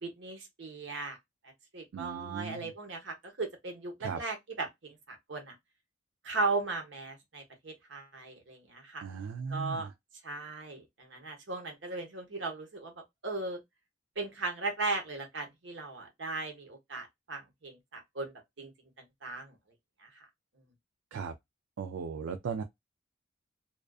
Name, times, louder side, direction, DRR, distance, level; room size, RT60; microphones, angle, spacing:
voice 1, 0.0-1.2 1.7-5.5 6.2-9.0 9.5-9.9 10.2-12.9 13.2-13.6 14.2-18.7 19.2-19.6 20.0-20.3 20.6-20.7, right 3 dB, 70° right, 0.9 m, -37 dB
voice 2, 1.9-2.7 4.0-4.2 9.0-9.9 21.1-21.3 21.8-22.6, right 5 dB, 85° right, 0.4 m, -37 dB
2.4 x 2.3 x 2.3 m
head